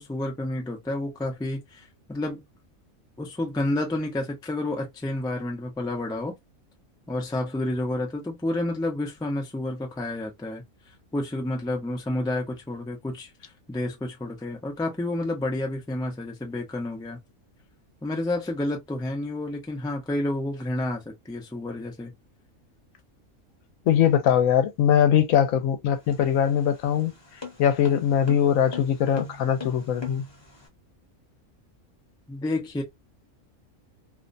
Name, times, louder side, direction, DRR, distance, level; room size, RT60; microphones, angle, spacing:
voice 1, 0.0-2.4 3.2-6.4 7.1-10.6 11.1-17.2 18.0-22.1 32.3-32.8, left 1 dB, 5° left, 0.3 m, -30 dB
voice 2, 23.9-27.1 27.6-30.2, left 9 dB, 75° left, 1.1 m, -21 dB
sound 1, 25.9-30.7, left 4 dB, 25° left, 0.7 m, -41 dB
2.7 x 2.1 x 2.5 m
omnidirectional pair, 1.4 m